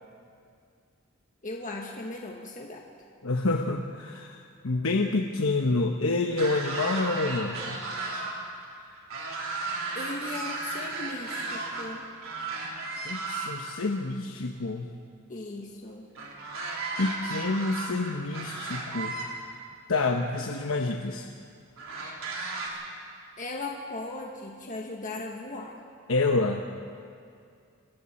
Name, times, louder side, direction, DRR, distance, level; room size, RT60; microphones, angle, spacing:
voice 1, 1.4-2.8 9.9-12.0 15.3-16.1 23.4-25.8, left 2 dB, 40° left, 0 dB, 1.5 m, -37 dB
voice 2, 3.2-7.8 13.0-14.9 17.0-19.2 19.9-21.3 22.7-22.8 26.1-26.6, left 3 dB, 75° left, 3 dB, 1.0 m, -28 dB
sound 1, 6.3-8.3 8.7-11.9 12.2-13.7 16.2-19.3 20.2-20.3 21.8-22.7, right 3 dB, 75° right, 3.8 m, -34 dB
27.5 x 22.0 x 4.3 m, 2.3 s
head